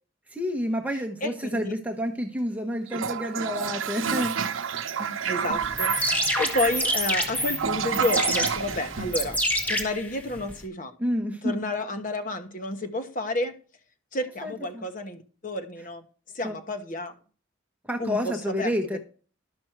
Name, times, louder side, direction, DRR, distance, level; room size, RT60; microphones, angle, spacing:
voice 1, 0.3-4.3 5.0-5.2 11.0-11.6 14.4-14.8 16.4-16.6 17.9-19.0, equal, 10° right, 0.9 m, -29 dB
voice 2, 1.2-1.7 5.2-9.4 9.7-10.9 11.4-13.5 14.1-16.0 16.3-17.1 18.0-18.7, left 1 dB, 40° left, 1.2 m, -30 dB
Toilet flush, 2.9-9.8, right 6 dB, 75° right, 0.7 m, -30 dB
sound 1, 5.6-10.6, equal, 10° left, 1.4 m, -28 dB
11.5 x 6.1 x 4.5 m
head